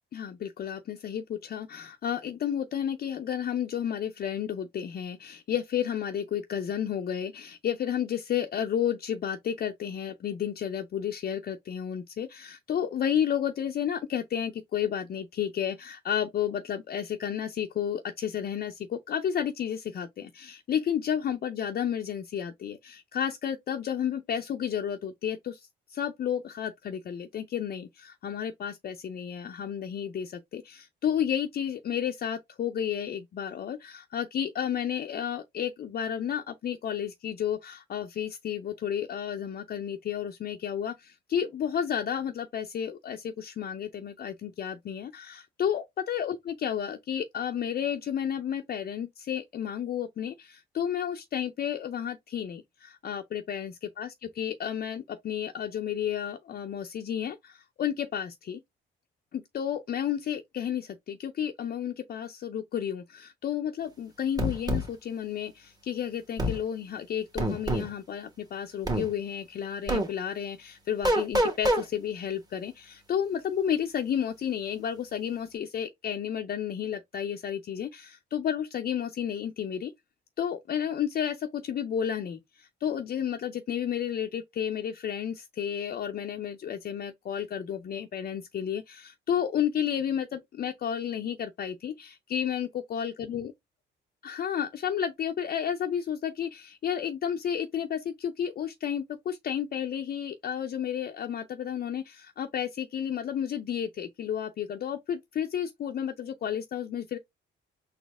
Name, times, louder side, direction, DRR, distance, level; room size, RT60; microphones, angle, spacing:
voice 1, 0.1-58.6 59.3-79.9 80.4-93.5 94.2-107.2, left 9 dB, 50° left, 0.5 m, -32 dB
sound 1, 64.4-64.9 66.4-66.6 67.4-67.9 68.9-69.1 69.9-70.1 71.0-71.8, right 1 dB, 20° right, 1.4 m, -25 dB
4.1 x 2.8 x 3.4 m
cardioid pair, 90°, 20 cm